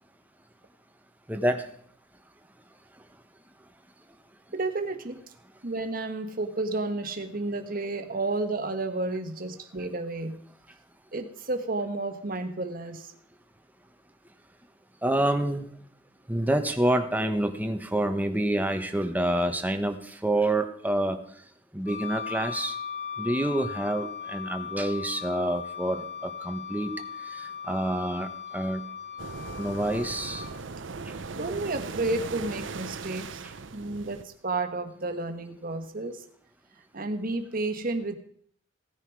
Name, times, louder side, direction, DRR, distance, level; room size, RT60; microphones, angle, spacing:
voice 1, 1.3-1.6 15.0-15.7 16.3-20.0 20.2-21.2 21.7-22.7 23.2-26.0 26.4-26.9 27.7-28.3 28.5-28.8 29.6-30.4, right 1 dB, 10° right, 6 dB, 1.2 m, -27 dB
voice 2, 4.5-5.2 5.6-10.4 11.1-13.1 31.4-33.4 33.7-36.2 36.9-38.2, right 2 dB, 50° right, 7 dB, 1.5 m, -31 dB
Wind instrument woodwind instrument, 21.9-30.5, left 7 dB, 40° left, 1.8 m, -38 dB
sound 1, 29.2-34.2, right 4 dB, 85° right, 0.8 m, -38 dB
17.0 x 10.0 x 4.8 m, 0.64 s
head